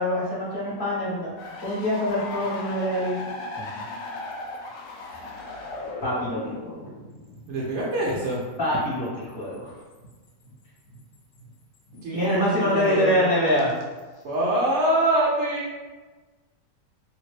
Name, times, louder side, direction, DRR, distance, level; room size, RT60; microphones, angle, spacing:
voice 1, 0.0-3.2 3.6-3.8 6.0-6.9 8.6-9.7 12.1-13.7, left 1 dB, 35° left, -7 dB, 1.0 m, -25 dB
sound 1, 1.4-12.5 12.8-14.2, left 2 dB, 70° left, 0.8 m, -39 dB
voice 2, 7.5-8.4 12.0-13.2 14.2-15.7, right 1 dB, 65° right, -5 dB, 0.7 m, -24 dB
2.8 x 2.6 x 3.2 m, 1.3 s
omnidirectional pair, 1.9 m